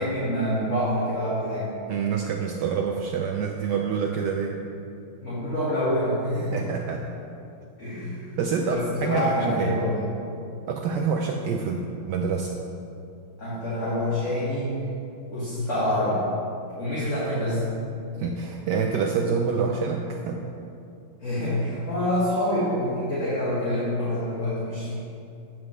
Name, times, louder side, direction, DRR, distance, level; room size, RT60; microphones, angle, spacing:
voice 1, 0.0-1.8 5.2-6.6 7.8-8.3 8.7-10.1 13.4-14.7 15.3-16.2 16.8-17.6 21.2-24.9, left 1 dB, 35° left, -11 dB, 2.2 m, -26 dB
voice 2, 1.9-4.6 6.5-7.0 8.4-9.8 10.7-12.5 18.2-20.4, right 5 dB, 85° right, 1 dB, 0.9 m, -27 dB
9.3 x 7.3 x 3.3 m, 2.6 s
omnidirectional pair, 2.4 m